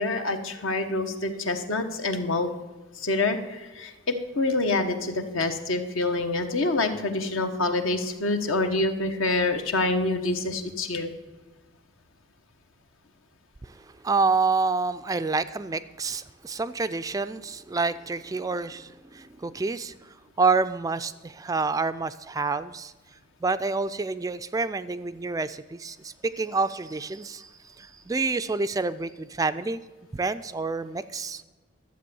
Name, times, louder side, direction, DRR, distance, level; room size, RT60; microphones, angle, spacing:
voice 1, 0.0-2.5 2.9-11.1, left 2 dB, 75° left, 6 dB, 1.3 m, -26 dB
voice 2, 13.6-22.9 23.4-29.8 30.1-31.4, right 4 dB, 15° right, 12 dB, 0.3 m, -28 dB
12.5 x 7.8 x 6.9 m, 1.3 s
head